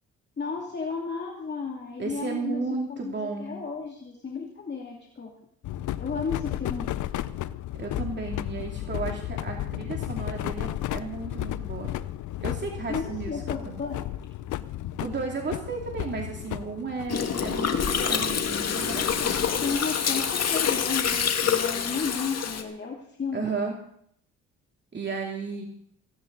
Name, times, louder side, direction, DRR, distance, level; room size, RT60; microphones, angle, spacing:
voice 1, 0.4-2.6 2.9-5.3 6.0-7.0 12.9-14.1 19.4-23.5, left 5 dB, 35° left, -1 dB, 2.6 m, -33 dB
voice 2, 2.0-3.6 7.8-11.9 12.4-13.8 15.0-19.4 23.3-23.8 24.9-25.6, right 4 dB, 35° right, 0 dB, 2.7 m, -34 dB
sound 1, 5.6-17.5, left 13 dB, 80° left, 0.8 m, -33 dB
Gurgling, 17.1-22.6, left 7 dB, 55° left, 2.1 m, -26 dB
18.0 x 16.5 x 4.0 m, 0.66 s
cardioid pair, 90°, 30 cm